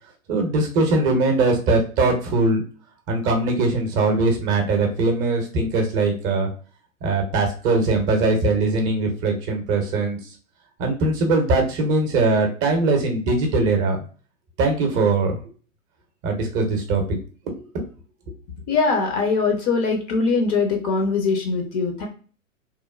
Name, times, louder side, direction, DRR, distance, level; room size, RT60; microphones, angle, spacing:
voice 1, 0.3-2.6 3.1-6.5 7.0-10.2 10.8-14.0 14.6-15.4 16.2-17.0 17.7-17.8, right 3 dB, 30° right, 3 dB, 0.7 m, -21 dB
voice 2, 18.7-22.1, left 4 dB, 35° left, 3 dB, 0.6 m, -22 dB
3.0 x 2.0 x 2.3 m, 0.39 s
figure-of-eight pair, 100°, 40 cm